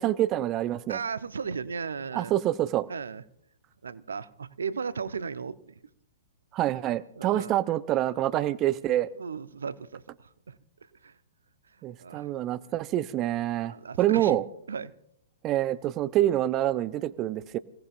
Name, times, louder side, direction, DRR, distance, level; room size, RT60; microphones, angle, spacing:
voice 1, 0.0-1.0 2.1-2.9 6.5-9.1 11.8-14.4 15.4-17.6, right 13 dB, 30° right, 16 dB, 0.6 m, -26 dB
voice 2, 0.9-2.3 2.9-3.2 3.8-5.7 7.2-7.5 8.3-8.5 9.2-10.6 11.0-11.1 12.0-12.3 13.6-14.4 14.7-14.9, right 5 dB, 70° right, 15 dB, 0.7 m, -36 dB
29.0 x 17.5 x 2.5 m, 0.75 s
figure-of-eight pair, 110°, 0 cm